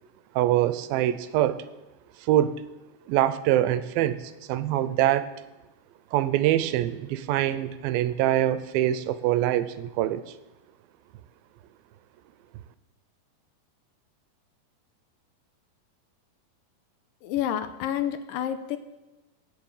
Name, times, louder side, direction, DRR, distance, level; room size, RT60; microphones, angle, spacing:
voice 1, 0.4-1.6 2.2-2.6 3.1-4.2 4.5-5.3 6.1-10.3, right 13 dB, 85° right, 14 dB, 2.5 m, -24 dB
voice 2, 17.2-18.8, left 10 dB, 80° left, 10 dB, 2.3 m, -29 dB
17.5 x 6.8 x 7.2 m, 1.1 s
omnidirectional pair, 4.2 m